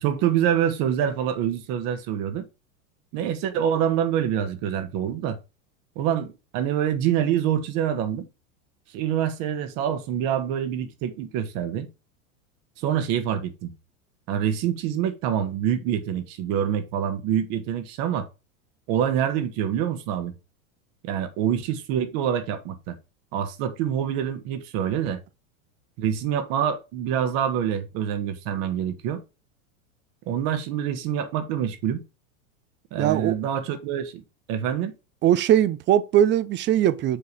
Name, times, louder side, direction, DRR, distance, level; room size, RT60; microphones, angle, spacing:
voice 1, 0.0-2.4 3.1-5.4 5.9-8.3 8.9-11.9 12.8-13.7 14.3-18.3 18.9-20.3 21.0-23.0 23.3-25.2 26.0-29.2 30.3-32.0 32.9-34.2 34.5-34.9, right 9 dB, 50° right, 1.5 m, -26 dB
voice 2, 33.0-33.4 35.2-37.2, right 11 dB, 25° right, 0.5 m, -20 dB
6.8 x 3.8 x 4.5 m
hypercardioid pair, 105°, 42 cm